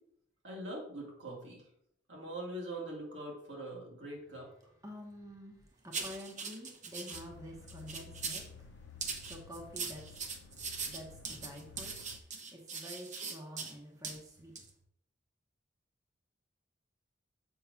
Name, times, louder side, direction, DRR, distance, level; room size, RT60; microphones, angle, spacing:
voice 1, 0.4-1.6 2.1-4.5, right 1 dB, 75° right, -2 dB, 2.4 m, -42 dB
voice 2, 4.8-8.7 9.3-10.2 10.9-12.0 12.2-14.5, equal, 20° right, 0 dB, 1.1 m, -48 dB
sound 1, 5.9-7.2 7.7-8.5 9.0-13.7 14.0-14.2 14.6-14.7, right 5 dB, 40° right, 0.9 m, -40 dB
sound 2, 7.1-12.2, left 5 dB, 85° left, 0.5 m, -54 dB
7.2 x 3.1 x 5.8 m, 0.71 s
head